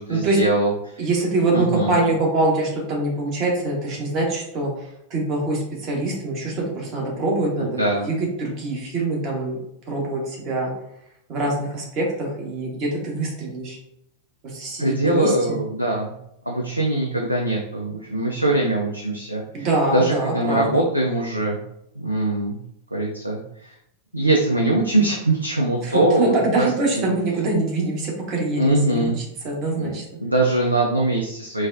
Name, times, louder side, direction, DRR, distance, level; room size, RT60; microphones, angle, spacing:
voice 1, 0.0-1.1 1.5-1.9 7.6-8.1 14.8-16.1 16.5-21.6 22.0-22.6 22.9-23.8 24.1-26.7 28.6-29.2 29.7-29.9 30.2-31.7, right 1 dB, 85° right, -1 dB, 0.4 m, -22 dB
voice 2, 1.0-9.6 9.9-10.7 11.3-13.8 14.4-15.6 19.5-20.7 25.8-29.1 29.4-30.0, right 2 dB, 40° right, -1 dB, 1.1 m, -24 dB
4.0 x 2.2 x 2.5 m, 0.79 s
figure-of-eight pair, 90°, 0 cm